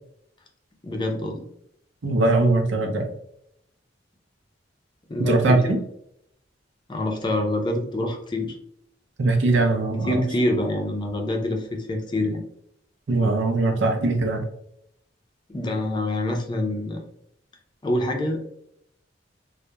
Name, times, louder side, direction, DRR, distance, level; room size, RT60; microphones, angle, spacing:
voice 1, 0.8-1.4 5.1-5.7 6.9-8.6 10.1-12.4 15.5-17.0 17.8-18.4, left 1 dB, 25° left, 2 dB, 0.4 m, -26 dB
voice 2, 2.0-3.1 5.2-5.8 9.2-10.1 13.1-14.4, right 2 dB, 90° right, 3 dB, 0.6 m, -21 dB
2.8 x 2.1 x 2.2 m, 0.73 s
head